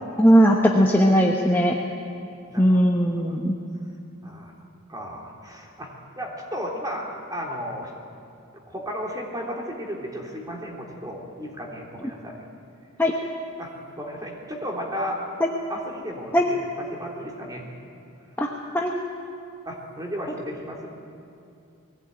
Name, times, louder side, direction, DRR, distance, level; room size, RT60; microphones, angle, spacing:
voice 1, 0.2-1.7 2.6-3.5 13.0-13.1 16.3-16.4 18.4-18.5 18.7-18.9, equal, 10° left, -1 dB, 1.1 m, -18 dB
voice 2, 2.5-2.8 3.3-3.4 4.2-4.5 4.9-7.9 8.7-12.4 13.6-15.2 15.7-17.7 19.6-20.9, equal, 15° right, -1 dB, 3.2 m, -34 dB
20.5 x 16.5 x 9.0 m, 2.7 s
head